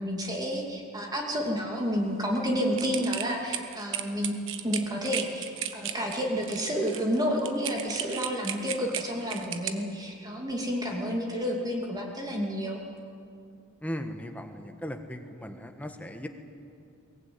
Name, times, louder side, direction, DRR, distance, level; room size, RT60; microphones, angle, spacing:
voice 1, 0.0-4.3 4.6-12.8, equal, 20° right, 0 dB, 2.7 m, -30 dB
sound 1, 2.8-9.7, right 10 dB, 60° right, 1.4 m, -35 dB
voice 2, 13.8-16.3, equal, 5° left, 5 dB, 1.4 m, -37 dB
23.0 x 20.0 x 9.6 m, 2.5 s
head